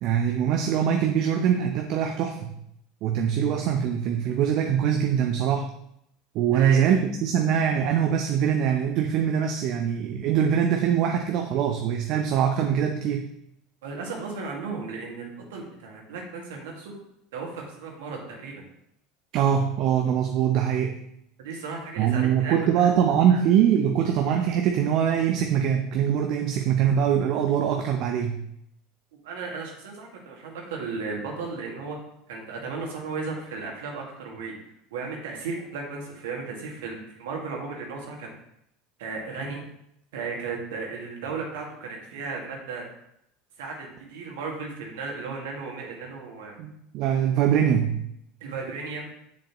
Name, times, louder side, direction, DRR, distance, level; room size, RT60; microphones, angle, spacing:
voice 1, 0.0-2.5 3.0-5.7 6.3-13.3 19.3-21.0 22.0-28.4 46.6-48.0, right 8 dB, 55° right, 4 dB, 0.7 m, -23 dB
voice 2, 13.8-16.9 17.3-18.6 21.4-22.9 23.3-23.4 29.2-32.0 32.3-34.6 34.9-38.3 39.0-39.7 40.1-42.9 43.6-46.6 48.4-49.1, right 4 dB, 70° right, 0 dB, 1.9 m, -35 dB
7.5 x 7.2 x 3.0 m, 0.76 s
hypercardioid pair, 75°, 0 cm